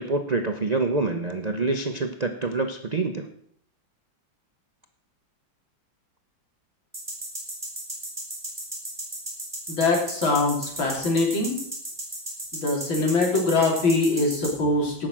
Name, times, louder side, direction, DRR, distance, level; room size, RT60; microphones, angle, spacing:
voice 1, 0.0-3.3, right 3 dB, 90° right, 6 dB, 0.3 m, -26 dB
sound 1, 6.9-14.5, right 1 dB, 5° right, 5.3 m, -33 dB
voice 2, 9.7-11.6 12.5-15.1, left 3 dB, 80° left, 0 dB, 3.7 m, -23 dB
17.5 x 6.6 x 6.1 m, 0.64 s
omnidirectional pair, 2.1 m